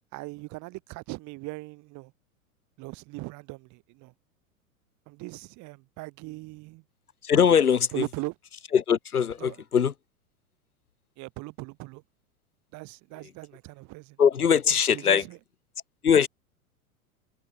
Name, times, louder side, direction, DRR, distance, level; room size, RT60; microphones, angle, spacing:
voice 1, 0.1-2.1 2.8-4.1 5.1-6.8 7.9-8.3 9.4-9.6 11.2-12.0 12.7-14.2 14.9-15.4, right 23 dB, 40° right, 5.8 m, -39 dB
voice 2, 7.2-8.1 8.7-9.9 14.2-15.2 16.0-16.3, left 7 dB, 85° left, 1.2 m, -21 dB
figure-of-eight pair, 100°, 43 cm